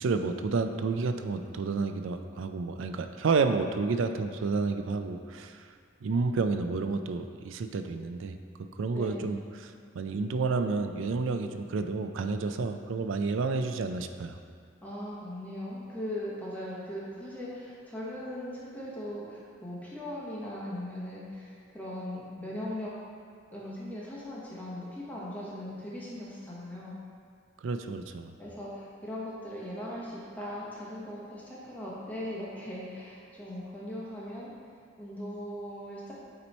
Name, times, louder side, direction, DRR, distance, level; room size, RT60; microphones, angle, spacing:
voice 1, 0.0-5.6 6.0-14.4 27.6-28.3, right 4 dB, 75° right, 7 dB, 0.4 m, -30 dB
voice 2, 8.9-9.3 14.8-22.9 23.5-27.0 28.4-34.5 35.0-36.1, left 1 dB, 10° left, -6 dB, 0.9 m, -39 dB
8.3 x 3.0 x 4.1 m, 2.2 s
head